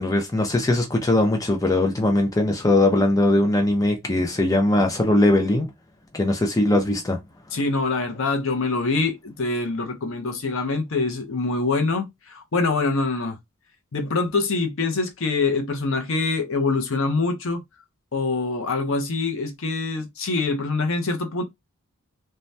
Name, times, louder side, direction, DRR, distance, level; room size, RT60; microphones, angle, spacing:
voice 1, 0.0-5.7 6.1-7.2, left 1 dB, 15° left, 0.6 m, -20 dB
voice 2, 7.5-13.4 13.9-17.6 18.1-21.4, left 3 dB, 60° left, 0.7 m, -24 dB
2.7 x 2.2 x 3.2 m
head